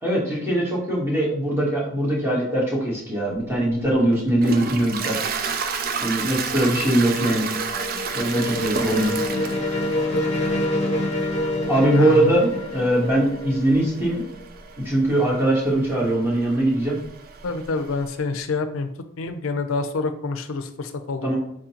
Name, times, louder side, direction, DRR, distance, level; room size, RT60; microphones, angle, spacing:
voice 1, 0.0-5.2 6.0-7.5 8.1-9.1 11.3-14.2 14.8-17.0 21.2-21.4, right 1 dB, 10° right, -5 dB, 1.3 m, -21 dB
Toilet flush, 3.4-18.1, right 5 dB, 45° right, 0.4 m, -32 dB
sound 1, 7.2-14.6, left 1 dB, 30° left, 0.8 m, -27 dB
voice 2, 11.9-12.3 17.4-18.9 19.2-21.4, left 3 dB, 80° left, 9 dB, 0.5 m, -27 dB
4.6 x 3.7 x 2.9 m, 0.69 s
head